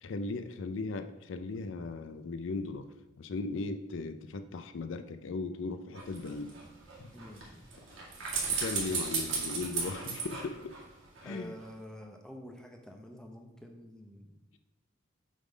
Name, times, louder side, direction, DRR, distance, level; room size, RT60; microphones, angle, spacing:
voice 1, 0.0-2.9 3.2-6.5 7.0-7.1 8.5-10.8 11.2-11.5, left 3 dB, 70° left, 9 dB, 0.4 m, -37 dB
sound 1, 5.9-11.3 11.6-11.7, right 5 dB, 75° right, 2.0 m, -36 dB
voice 2, 11.2-14.4, equal, 5° left, 2 dB, 0.7 m, -48 dB
7.3 x 3.7 x 5.0 m, 0.96 s
head